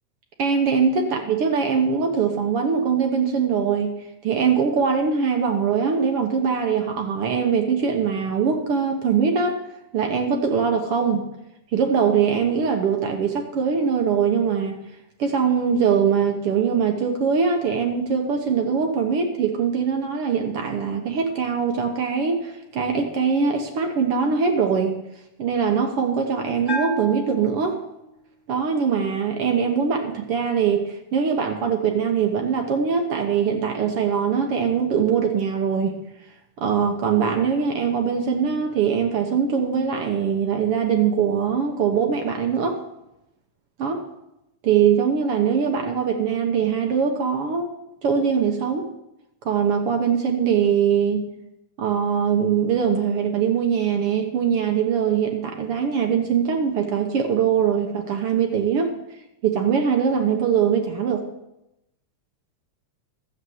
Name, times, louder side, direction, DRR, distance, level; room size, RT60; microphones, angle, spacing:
voice 1, 0.4-4.0 4.2-9.6 9.9-11.2 11.7-14.8 15.2-24.9 25.4-27.8 28.5-36.0 36.6-42.8 43.8-44.0 44.6-47.7 48.0-48.9 49.5-51.3 51.8-59.0 59.4-61.2, right 6 dB, 60° right, 3 dB, 1.8 m, -22 dB
Bell, 26.7-28.3, left 1 dB, 15° right, 4.7 m, -32 dB
13.0 x 8.3 x 6.3 m, 0.86 s
omnidirectional pair, 3.3 m